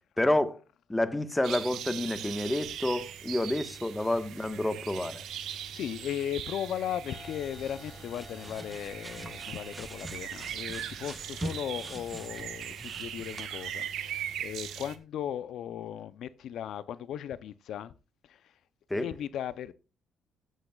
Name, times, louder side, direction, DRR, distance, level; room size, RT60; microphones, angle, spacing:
voice 1, 0.2-0.6 0.9-5.2 18.9-19.1, left 1 dB, 10° left, 1.2 m, -29 dB
sound 1, 1.4-15.0, right 9 dB, 80° right, 1.3 m, -40 dB
voice 2, 5.4-17.9 18.2-18.5 18.9-19.7, left 10 dB, 75° left, 0.6 m, -37 dB
sound 2, 7.0-12.6, left 2 dB, 30° left, 5.3 m, -53 dB
sound 3, 7.0-13.5, right 1 dB, 15° right, 1.1 m, -44 dB
16.5 x 8.2 x 2.3 m
cardioid pair, 90°, 0 cm